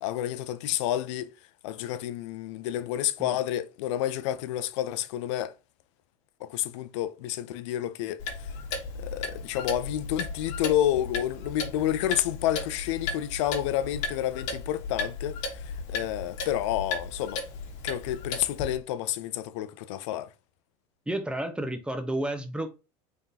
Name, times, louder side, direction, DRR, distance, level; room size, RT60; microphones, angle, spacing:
voice 1, 0.0-1.3 1.6-5.5 6.4-8.2 9.0-15.6 15.9-17.4 17.8-20.3, left 12 dB, 80° left, 0.5 m, -29 dB
Clock, 8.2-18.8, left 4 dB, 60° left, 1.2 m, -35 dB
voice 2, 21.1-22.8, right 1 dB, 5° right, 0.7 m, -31 dB
3.7 x 3.6 x 2.8 m
supercardioid pair, 120°, 15 cm